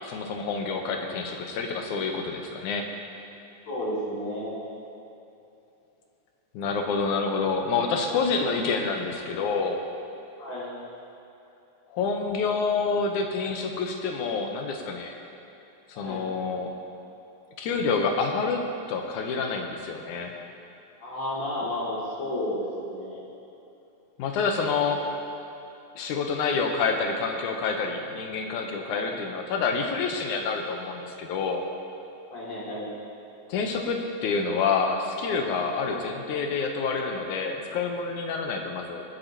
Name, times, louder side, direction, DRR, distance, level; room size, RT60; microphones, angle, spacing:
voice 1, 0.0-2.9 6.5-9.8 11.9-15.1 15.9-16.7 17.6-20.3 24.2-25.0 26.0-31.6 33.5-39.0, left 4 dB, 85° left, 3 dB, 2.3 m, -28 dB
voice 2, 3.7-4.6 10.4-10.7 16.0-16.2 21.0-23.2 28.8-29.2 32.3-32.9 35.8-36.1, left 1 dB, 60° left, -8 dB, 3.6 m, -32 dB
22.5 x 8.0 x 2.9 m, 3.0 s
omnidirectional pair, 3.4 m